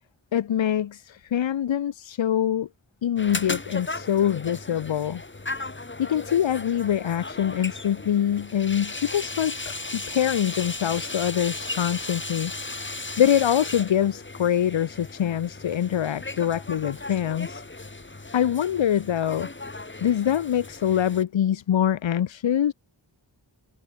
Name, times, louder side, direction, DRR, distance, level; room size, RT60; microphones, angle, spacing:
voice 1, 0.3-2.7 3.0-5.2 6.0-12.5 13.2-17.6 18.3-19.5 20.0-22.7, left 10 dB, 80° left, 0.6 m, -24 dB
sound 1, 3.2-21.2, left 2 dB, 25° left, 1.2 m, -36 dB
wide cardioid pair, 40°, 45 cm